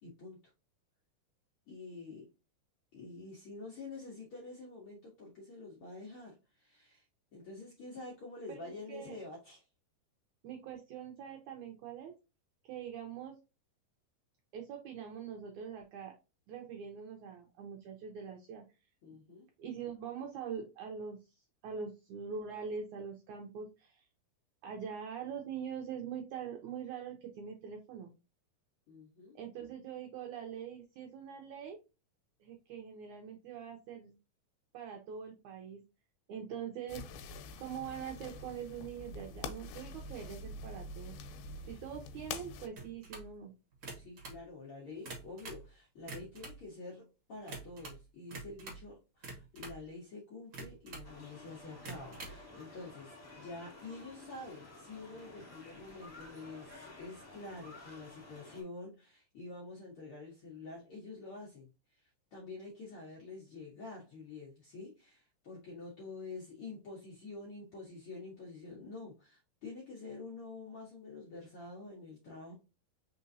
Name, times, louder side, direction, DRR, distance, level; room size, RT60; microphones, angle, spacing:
voice 1, 0.0-0.4 1.7-2.3 2.9-7.0 7.3-9.6 19.0-19.5 28.9-29.4 41.5-41.8 43.9-61.7 61.9-72.5, left 3 dB, 65° left, -4 dB, 1.3 m, -48 dB
voice 2, 8.5-9.2 10.4-12.1 12.6-13.3 14.5-16.1 16.5-18.6 19.6-21.2 21.6-24.1 24.6-28.1 29.3-31.8 32.4-34.1 34.7-35.8 36.3-37.0 37.6-41.2 41.7-43.5, right 7 dB, 85° right, 2 dB, 1.7 m, -43 dB
sound 1, 36.9-42.7, left 3 dB, 85° left, 2.5 m, -45 dB
sound 2, 42.8-43.3 43.7-44.4 44.9-45.7 46.0-46.6 47.5-48.0 48.3-48.9 49.2-49.8 50.5-51.1 51.7-52.4, right 3 dB, 65° right, 1.1 m, -46 dB
sound 3, 51.0-58.6, left 2 dB, 30° left, 0.7 m, -53 dB
5.1 x 3.8 x 2.6 m, 0.28 s
omnidirectional pair, 4.5 m